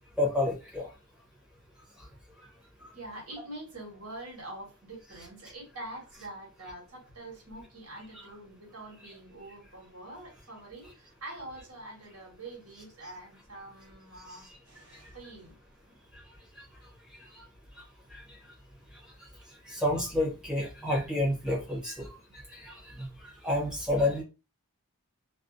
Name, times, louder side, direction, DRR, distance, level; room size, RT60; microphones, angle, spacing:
voice 1, 0.2-0.9 2.8-2.9 16.6-16.7 17.4-17.5 18.1-18.2 19.7-22.1 22.5-23.1 23.4-24.2, left 1 dB, 5° right, -4 dB, 0.8 m, -29 dB
voice 2, 2.9-15.6, right 1 dB, 75° right, -2 dB, 1.3 m, -45 dB
2.6 x 2.0 x 2.5 m, 0.31 s
head